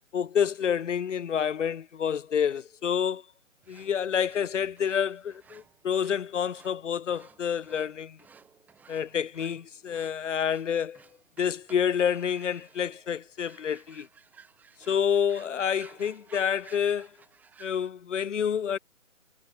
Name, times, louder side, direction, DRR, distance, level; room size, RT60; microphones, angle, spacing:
voice 1, 0.1-3.2 3.7-8.2 8.9-11.0 11.4-14.1 14.9-17.1 17.6-18.8, left 8 dB, 60° left, 0.9 m, -28 dB
sound 1, 3.6-17.9, right 6 dB, 5° right, 1.2 m, -56 dB
figure-of-eight pair, 150°, 41 cm